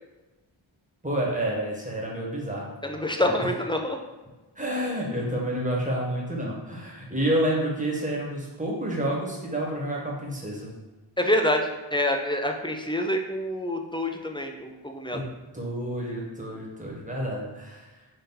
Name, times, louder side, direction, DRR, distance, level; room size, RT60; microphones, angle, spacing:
voice 1, 1.0-2.7 3.2-3.5 4.6-10.7 15.1-15.3 15.5-17.9, right 1 dB, 15° right, -3 dB, 1.1 m, -29 dB
voice 2, 2.8-4.0 11.2-15.2, left 1 dB, 10° left, 3 dB, 0.3 m, -27 dB
4.2 x 2.5 x 3.7 m, 1.2 s
wide cardioid pair, 50°, 49 cm